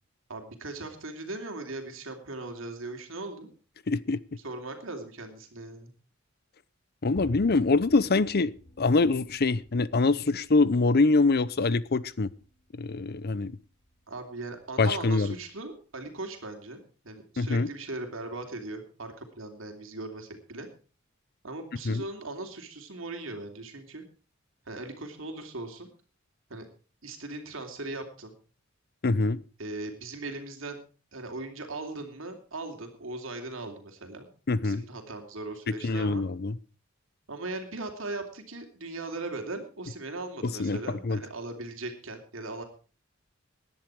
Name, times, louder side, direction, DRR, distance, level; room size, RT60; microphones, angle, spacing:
voice 1, 0.3-3.5 4.4-5.9 14.1-20.7 21.4-24.0 24.7-25.9 26.5-26.7 27.0-28.3 29.6-30.8 31.1-34.3 34.6-36.3 37.3-42.6, right 2 dB, 70° right, 3.0 m, -39 dB
voice 2, 3.9-4.2 7.0-12.3 12.8-13.6 14.8-15.3 17.4-17.7 21.8-22.0 29.0-29.4 34.5-34.8 35.7-36.6 40.4-41.2, left 3 dB, 50° left, 0.7 m, -25 dB
sound 1, 7.1-16.2, left 1 dB, 30° left, 1.6 m, -51 dB
18.0 x 11.0 x 4.8 m
head